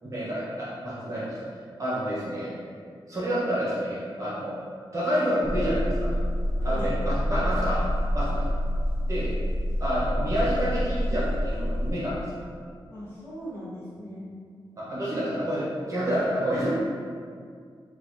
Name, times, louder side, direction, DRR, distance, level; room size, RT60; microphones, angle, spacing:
voice 1, 0.0-1.4 1.8-2.6 3.1-4.6 4.9-6.1 6.6-7.8 8.1-8.4 9.0-9.3 9.8-12.2 14.8-16.7, equal, 35° right, -9 dB, 1.2 m, -28 dB
sound 1, 5.4-11.9, equal, 50° left, 1.1 m, -27 dB
voice 2, 6.6-7.0 12.9-14.3, equal, 30° left, -11 dB, 1.4 m, -40 dB
5.0 x 2.6 x 2.8 m, 2.1 s
wide cardioid pair, 145°, 9 cm